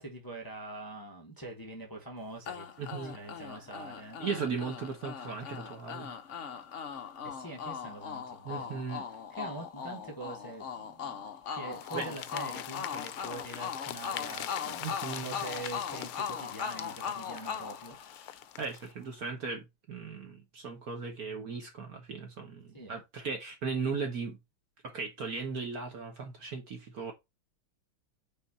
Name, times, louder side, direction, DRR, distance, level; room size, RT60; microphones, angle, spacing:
voice 1, 0.0-4.2 7.2-8.8 9.3-11.3 11.5-14.8 15.2-18.0 22.7-23.0, right 2 dB, 10° left, 1.2 m, -44 dB
sound 1, 2.5-18.6, left 7 dB, 60° left, 0.8 m, -40 dB
voice 2, 2.8-3.2 4.2-6.1 8.4-9.1 11.9-12.1 14.8-15.4 18.6-24.4 24.8-27.1, right 5 dB, 50° right, 1.4 m, -37 dB
sound 2, 11.7-18.9, left 13 dB, 85° left, 1.5 m, -43 dB
5.6 x 4.1 x 4.1 m
omnidirectional pair, 2.3 m